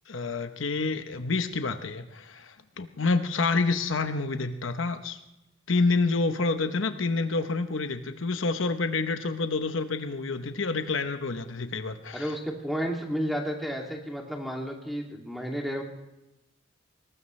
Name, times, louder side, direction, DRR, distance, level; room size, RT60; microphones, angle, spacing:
voice 1, 0.1-5.2 5.7-12.2, left 3 dB, 70° left, 8 dB, 0.9 m, -28 dB
voice 2, 12.1-15.8, equal, ahead, 0 dB, 2.5 m, -32 dB
21.5 x 19.0 x 3.3 m, 0.93 s
head